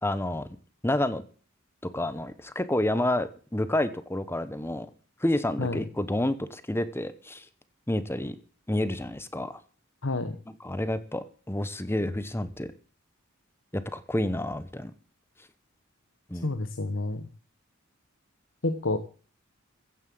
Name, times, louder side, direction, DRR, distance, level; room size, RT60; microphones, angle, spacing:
voice 1, 0.0-0.5 0.8-1.2 1.9-4.9 5.2-7.4 7.9-8.3 8.7-9.6 10.5-12.7 13.7-14.9 16.3-16.5, left 1 dB, 10° left, 13 dB, 1.0 m, -29 dB
voice 2, 10.0-10.4 16.4-17.3 18.6-19.0, left 2 dB, 65° left, 8 dB, 1.2 m, -29 dB
15.5 x 7.5 x 7.7 m, 0.40 s
head